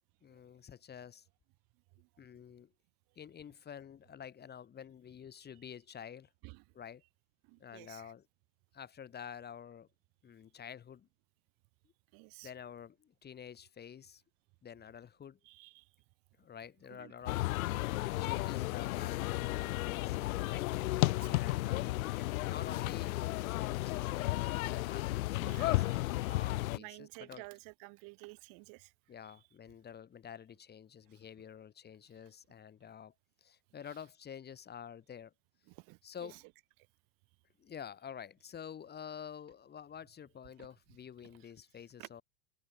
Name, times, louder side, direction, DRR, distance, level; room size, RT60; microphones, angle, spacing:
voice 1, 0.2-1.3 2.2-2.7 3.2-6.3 6.7-7.0 7.6-8.2 8.7-9.9 10.2-11.1 12.4-14.2 14.6-15.4 16.4-17.5 18.2-20.8 21.3-25.8 26.3-27.4 29.1-33.1 33.4-35.3 36.0-36.4 37.6-42.2, left 8 dB, 25° left, 1.2 m, -49 dB
voice 2, 5.3-5.7 6.4-6.7 7.0-7.1 7.4-8.1 12.1-12.5 15.4-15.9 16.9-17.2 18.0-18.6 20.4-21.7 25.4-29.5 31.1-31.4 32.1-32.3 33.8-34.1 35.7-36.5 36.8-36.9 40.6-42.1, right 29 dB, 55° right, 1.3 m, -55 dB
sound 1, 17.3-26.8, left 18 dB, 85° left, 0.6 m, -33 dB
open air
hypercardioid pair, 105°, 41 cm